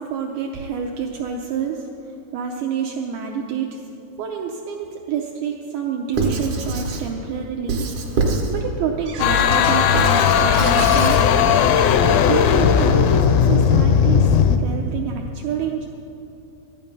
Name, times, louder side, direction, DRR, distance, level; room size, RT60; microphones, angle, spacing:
voice 1, 0.0-1.9 2.3-3.8 4.2-7.9 8.5-11.2 12.2-15.9, right 7 dB, 80° right, 1 dB, 2.2 m, -28 dB
Squeak / Writing, 6.1-7.1 7.7-8.6 9.1-11.3, right 3 dB, 65° right, 2.2 m, -25 dB
sound 1, 9.2-14.6, left 7 dB, 90° left, 2.9 m, -16 dB
14.0 x 11.5 x 5.3 m, 2.7 s
omnidirectional pair, 5.0 m